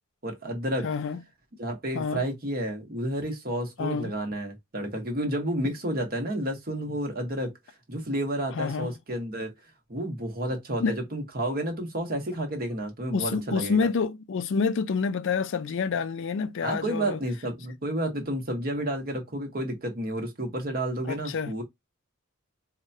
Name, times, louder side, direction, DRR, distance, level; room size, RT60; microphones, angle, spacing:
voice 1, 0.2-0.9 1.6-7.5 7.9-9.5 9.9-13.9 16.6-21.6, right 1 dB, 45° right, 1.1 m, -31 dB
voice 2, 0.8-1.2 1.9-2.2 3.8-4.1 5.6-5.7 8.5-8.9 10.8-11.0 13.1-17.2 21.1-21.5, left 5 dB, 60° left, 0.4 m, -28 dB
4.7 x 2.2 x 2.7 m
head